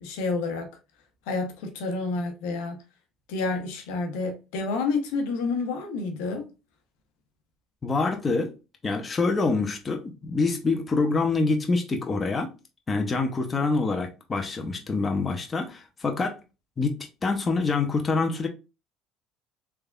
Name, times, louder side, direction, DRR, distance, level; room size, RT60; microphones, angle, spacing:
voice 1, 0.0-0.7 1.3-2.8 3.3-6.5, left 3 dB, 85° left, 0.8 m, -29 dB
voice 2, 7.8-8.5 8.8-12.5 12.9-16.4 16.8-18.5, left 3 dB, 25° left, 0.8 m, -26 dB
3.4 x 3.3 x 2.4 m
supercardioid pair, 105°, 0 cm